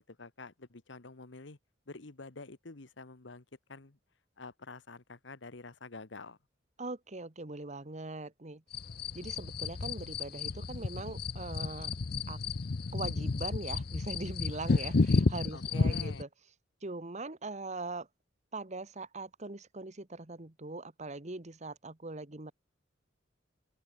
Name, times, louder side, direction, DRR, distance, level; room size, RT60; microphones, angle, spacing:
voice 1, 0.0-1.6 1.9-3.4 3.7-4.0 4.4-6.4 15.5-16.2, left 3 dB, 75° left, 1.3 m, -48 dB
voice 2, 6.8-8.6 9.1-11.9 12.3-12.4 12.9-16.3 16.8-18.1 18.5-22.5, right 2 dB, 40° right, 1.5 m, -41 dB
sound 1, 8.7-16.2, left 3 dB, 55° left, 0.6 m, -32 dB
open air
head